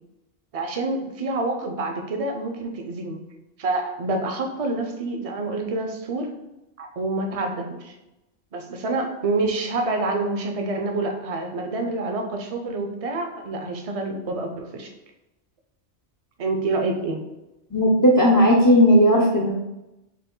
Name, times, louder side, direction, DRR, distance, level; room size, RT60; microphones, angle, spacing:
voice 1, 0.5-3.2 3.6-6.3 6.8-7.9 8.5-14.9 16.4-17.2, right 2 dB, 40° right, 3 dB, 0.5 m, -27 dB
voice 2, 17.7-19.5, equal, 30° left, -1 dB, 0.3 m, -16 dB
4.9 x 2.5 x 3.8 m, 0.96 s
omnidirectional pair, 1.2 m